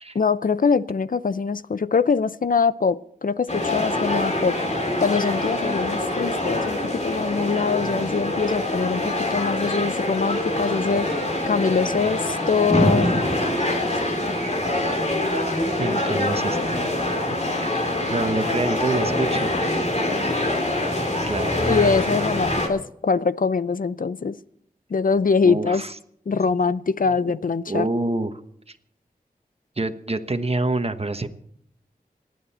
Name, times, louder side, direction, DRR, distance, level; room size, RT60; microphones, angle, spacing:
voice 1, 0.1-4.6 5.0-11.1 11.5-13.1 13.9-14.0 21.7-24.4 24.9-25.8 26.3-27.9, left 5 dB, 65° left, 16 dB, 0.6 m, -23 dB
sound 1, 3.5-22.7, left 1 dB, 45° left, 3.0 m, -24 dB
voice 2, 15.8-16.6 17.6-19.5 21.3-21.6 25.4-25.9 27.7-28.3 28.7-28.8 29.8-31.3, right 2 dB, 40° right, 9 dB, 1.2 m, -26 dB
28.5 x 9.4 x 4.3 m, 0.69 s
wide cardioid pair, 55°, 15 cm